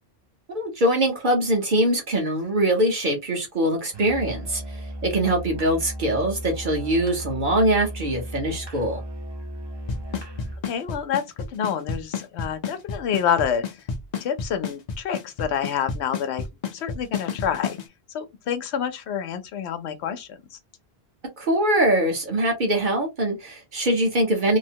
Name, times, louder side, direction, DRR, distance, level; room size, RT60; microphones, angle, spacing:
voice 1, 0.5-9.0 21.4-24.6, right 1 dB, 50° right, 1.1 m, -23 dB
Musical instrument, 3.9-10.7, equal, 30° right, 0.5 m, -35 dB
Drum kit / Snare drum / Bass drum, 9.9-17.8, left 5 dB, 50° left, 0.5 m, -29 dB
voice 2, 10.6-11.2 11.5-13.6 14.2-16.5 16.7-17.8 18.1-20.4, left 8 dB, 90° left, 0.9 m, -27 dB
2.9 x 2.1 x 2.7 m
omnidirectional pair, 1.1 m